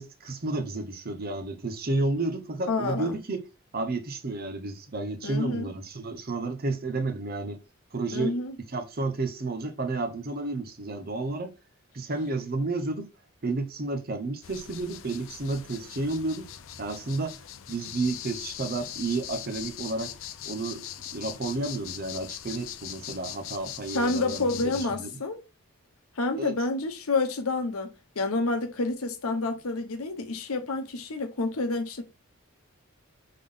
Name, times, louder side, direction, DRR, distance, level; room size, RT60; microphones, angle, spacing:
voice 1, 0.0-3.5 3.7-7.6 7.9-8.4 8.7-11.5 11.9-13.1 13.4-16.5 16.8-17.4 17.7-20.1 20.4-20.9 21.1-25.1 26.4-26.5, right 3 dB, 45° right, 0.7 m, -31 dB
voice 2, 2.7-3.2 5.2-5.7 8.1-8.5 23.9-25.4 26.2-32.0, left 3 dB, 80° left, 0.9 m, -29 dB
sound 1, 14.4-24.9, left 11 dB, 65° left, 0.4 m, -41 dB
3.8 x 3.6 x 3.5 m
head